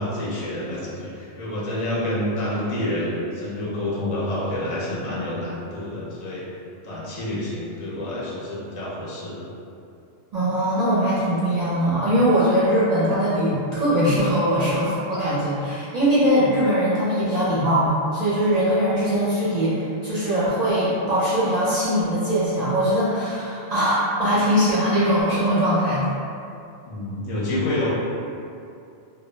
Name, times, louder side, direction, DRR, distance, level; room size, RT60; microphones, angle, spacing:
voice 1, 0.0-6.4 6.8-9.5 26.8-27.9, left 1 dB, 45° left, -7 dB, 0.5 m, -28 dB
voice 2, 10.3-26.1, equal, 50° right, -10 dB, 0.5 m, -21 dB
2.2 x 2.2 x 3.0 m, 2.6 s
omnidirectional pair, 1.1 m